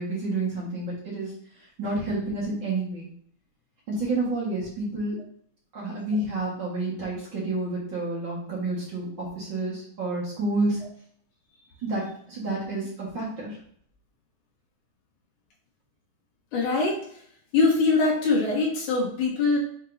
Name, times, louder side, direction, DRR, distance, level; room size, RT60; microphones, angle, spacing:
voice 1, 0.0-1.3 1.8-3.1 3.9-5.2 5.7-10.8 11.8-13.6, right 2 dB, 45° right, -6 dB, 2.0 m, -29 dB
voice 2, 16.5-17.0 17.5-19.6, left 3 dB, 80° left, -2 dB, 3.0 m, -22 dB
6.3 x 5.5 x 2.7 m, 0.62 s
omnidirectional pair, 3.5 m